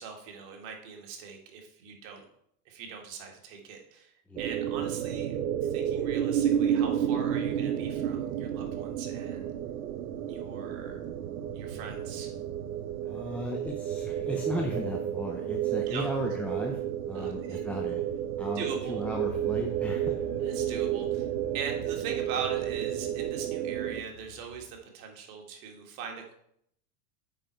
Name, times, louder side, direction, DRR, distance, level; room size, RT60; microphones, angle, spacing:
voice 1, 0.0-2.3 2.7-5.4 5.6-9.5 10.3-11.0 11.5-12.3 15.9-16.1 17.1-17.7 18.6-19.0 20.4-21.3 21.5-26.3, right 6 dB, 55° right, 2 dB, 1.8 m, -41 dB
sound 1, 4.4-24.0, right 10 dB, 85° right, 0.8 m, -31 dB
sound 2, 6.2-24.5, equal, 35° right, 2.2 m, -57 dB
voice 2, 13.0-18.0 18.4-20.1, equal, 5° left, 0 dB, 0.5 m, -36 dB
sound 3, 19.0-24.8, left 5 dB, 75° left, 2.4 m, -48 dB
7.7 x 5.2 x 4.4 m, 0.70 s
supercardioid pair, 120°, 47 cm